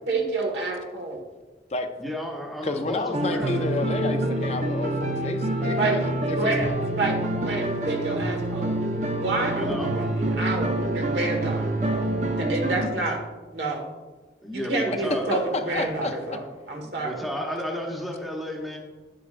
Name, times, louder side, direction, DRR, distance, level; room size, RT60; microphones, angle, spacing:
voice 1, 0.1-1.2 5.8-6.0 6.4-6.7 7.0-8.8 9.2-12.1 12.4-13.2 13.5-13.9 14.5-17.2, right 2 dB, 70° right, 1 dB, 1.7 m, -29 dB
voice 2, 2.0-3.7 9.5-10.0 13.0-13.1 14.4-15.3 16.8-18.8, equal, ahead, -1 dB, 1.0 m, -33 dB
voice 3, 2.6-6.4 6.6-6.7 9.5-9.6 15.3-16.1, left 3 dB, 35° left, 6 dB, 0.5 m, -31 dB
sound 1, 3.1-12.9, right 1 dB, 40° right, 0.6 m, -26 dB
10.0 x 7.6 x 2.6 m, 1.3 s
head